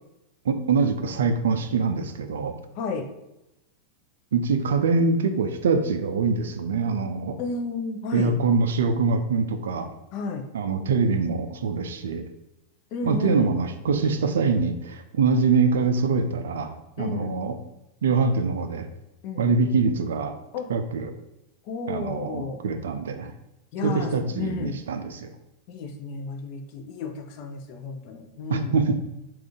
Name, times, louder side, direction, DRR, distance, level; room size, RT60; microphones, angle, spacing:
voice 1, 0.5-2.6 4.3-7.4 8.1-9.9 10.5-12.2 13.0-17.6 18.0-18.9 19.4-20.3 20.7-21.1 21.9-23.3 23.8-25.3 28.5-29.0, right 4 dB, 60° right, 8 dB, 0.3 m, -24 dB
voice 2, 2.7-3.1 7.4-8.3 10.1-10.4 12.9-13.5 17.0-17.3 19.2-19.5 20.5-20.7 21.6-22.6 23.7-24.8 25.7-28.8, left 4 dB, 45° left, 4 dB, 0.5 m, -32 dB
3.7 x 2.4 x 3.5 m, 0.92 s
figure-of-eight pair, 90°, 0 cm